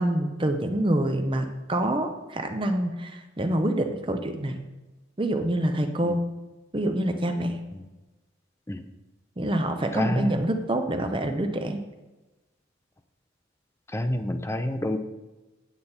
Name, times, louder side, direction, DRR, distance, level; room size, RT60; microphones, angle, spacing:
voice 1, 0.0-4.6 5.2-6.2 6.7-7.6 9.4-11.8, right 1 dB, 25° right, 6 dB, 0.7 m, -26 dB
voice 2, 9.9-10.4 13.9-15.0, left 1 dB, 15° left, 8 dB, 0.4 m, -28 dB
8.7 x 8.2 x 4.3 m, 1.1 s
head